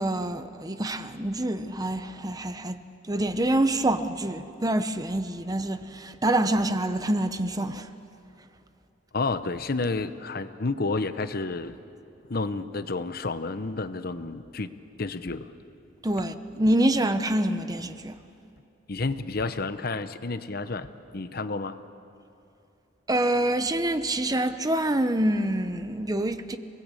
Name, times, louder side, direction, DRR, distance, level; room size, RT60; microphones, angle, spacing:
voice 1, 0.0-2.8 3.1-7.9 16.0-18.2 23.1-26.6, right 1 dB, 20° right, 0.8 m, -26 dB
voice 2, 9.1-11.8 12.3-14.7 15.0-15.5 18.9-20.9 21.1-21.8, left 3 dB, 55° left, 0.9 m, -30 dB
29.0 x 19.0 x 8.4 m
head